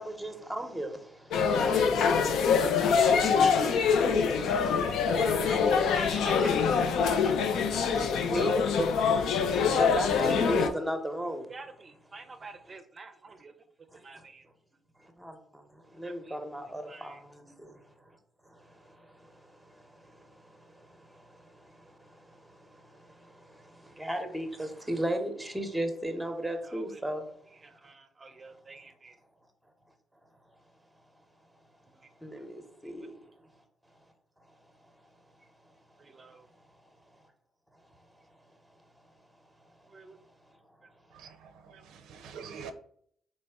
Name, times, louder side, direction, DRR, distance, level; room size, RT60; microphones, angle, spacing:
voice 1, 0.0-4.3 4.7-6.1 6.4-6.5 7.3-7.5 7.9-11.5 13.9-14.2 15.0-17.8 18.5-27.3 32.2-33.2, right 1 dB, 5° right, 0.8 m, -37 dB
sound 1, 1.3-10.7, left 6 dB, 80° left, 0.5 m, -25 dB
voice 2, 2.7-3.4 3.8-4.0 5.1-6.8 11.5-13.5 14.0-14.4 16.0-16.4 16.9-17.2 26.7-27.0 27.6-29.2 36.0-36.5 39.9-40.2, right 3 dB, 35° right, 0.5 m, -48 dB
voice 3, 41.1-42.7, right 6 dB, 85° right, 0.4 m, -45 dB
3.9 x 3.1 x 3.4 m
cardioid pair, 90°, 0 cm